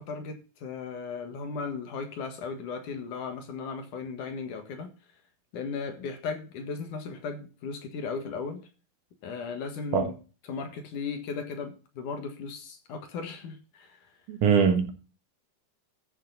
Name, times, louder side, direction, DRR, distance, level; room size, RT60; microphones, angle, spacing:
voice 1, 0.0-4.9 5.5-8.6 9.2-10.1 10.5-14.0, left 5 dB, 65° left, 3.1 m, -36 dB
voice 2, 14.3-14.9, right 6 dB, 65° right, 2.8 m, -22 dB
14.5 x 6.8 x 4.1 m
omnidirectional pair, 4.1 m